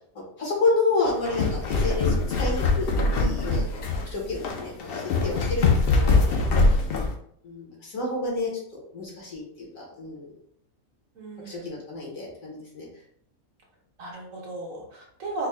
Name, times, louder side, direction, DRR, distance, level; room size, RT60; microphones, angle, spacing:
voice 1, 0.4-3.7 4.0-6.4 7.4-10.3 11.4-12.9, left 3 dB, 75° left, -3 dB, 1.7 m, -30 dB
sound 1, 1.1-7.1, left 3 dB, 60° left, 0.6 m, -23 dB
voice 2, 11.1-11.8 14.0-15.5, right 2 dB, 70° right, -2 dB, 1.4 m, -35 dB
4.2 x 2.2 x 3.3 m, 0.67 s
omnidirectional pair, 1.4 m